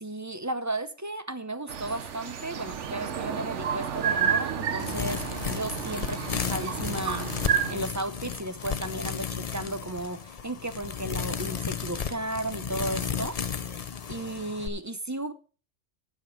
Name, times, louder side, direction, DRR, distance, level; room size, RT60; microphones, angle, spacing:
voice 1, 0.0-7.3 7.7-13.4 14.1-15.3, right 2 dB, 20° right, 0.6 m, -34 dB
sound 1, 1.7-7.7, right 8 dB, 75° right, 1.3 m, -30 dB
sound 2, 4.8-14.7, left 7 dB, 40° left, 0.6 m, -33 dB
11.5 x 7.4 x 5.1 m
omnidirectional pair, 1.2 m